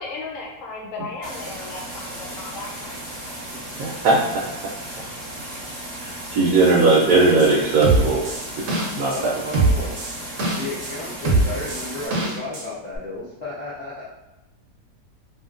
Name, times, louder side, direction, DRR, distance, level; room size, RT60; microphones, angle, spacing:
voice 1, 0.0-3.0, left 3 dB, 70° left, -1 dB, 0.8 m, -35 dB
sound 1, 1.2-12.1, right 1 dB, 30° right, 0.6 m, -35 dB
voice 2, 3.8-4.4 6.0-8.2 9.0-9.4, right 3 dB, 80° right, -4 dB, 1.2 m, -18 dB
sound 2, 7.4-7.5 7.8-9.2 9.5-10.9 11.2-12.6 13.0-13.1, right 2 dB, 60° right, 0.9 m, -22 dB
voice 3, 9.1-10.1 10.5-14.0, left 2 dB, 85° left, -9 dB, 0.3 m, -33 dB
2.9 x 2.8 x 2.4 m, 1.0 s
omnidirectional pair, 1.8 m